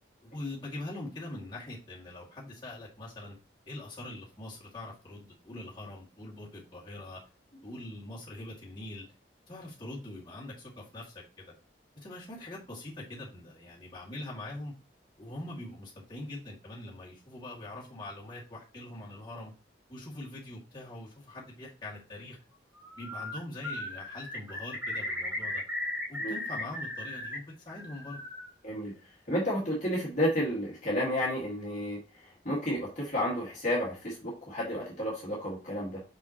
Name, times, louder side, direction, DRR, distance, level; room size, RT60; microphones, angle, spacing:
voice 1, 0.2-3.4 3.7-7.2 7.6-9.1 9.5-11.5 11.9-14.7 15.2-19.5 19.9-22.4 22.9-25.6 26.1-28.2, left 1 dB, 25° left, -6 dB, 2.2 m, -43 dB
Bird, 22.8-23.4 23.6-27.4 27.7-28.5, left 1 dB, 10° right, 1.7 m, -37 dB
voice 2, 29.3-36.0, equal, 40° left, -5 dB, 1.9 m, -31 dB
5.8 x 5.5 x 3.0 m, 0.33 s
head